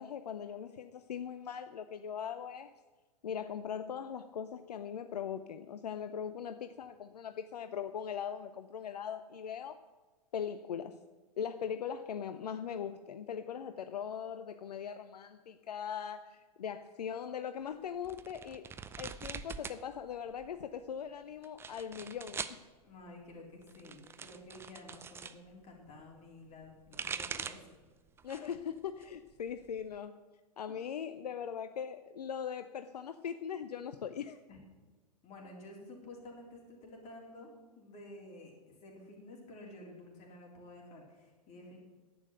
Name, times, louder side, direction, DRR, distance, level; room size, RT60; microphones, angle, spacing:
voice 1, 0.0-2.7 3.2-9.8 10.3-11.0 11.4-18.7 19.0-22.6 28.2-30.2 30.6-34.4, left 8 dB, 70° left, 10 dB, 0.6 m, -40 dB
sound 1, 18.0-19.8 20.1-20.8 21.4-22.6 23.6-25.4 26.6-27.7 28.2-28.6 29.0-30.0, right 6 dB, 10° right, 0.5 m, -43 dB
voice 2, 22.8-27.7 34.5-34.6 35.2-41.8, left 2 dB, 30° left, -1 dB, 3.7 m, -51 dB
11.0 x 8.5 x 7.9 m, 1.3 s
figure-of-eight pair, 105°, 21 cm